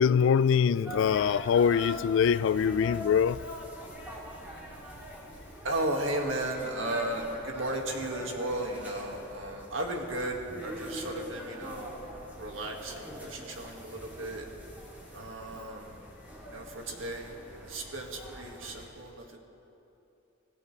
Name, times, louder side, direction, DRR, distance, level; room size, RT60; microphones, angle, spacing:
voice 1, 0.0-3.4, left 7 dB, 70° left, 0.3 m, -24 dB
sound 1, 0.9-18.9, equal, 10° right, 3.4 m, -43 dB
voice 2, 5.6-11.9 12.4-14.5 15.1-16.0 16.5-17.3 17.6-19.4, right 1 dB, 75° right, 2.0 m, -35 dB
25.5 x 16.5 x 3.3 m
head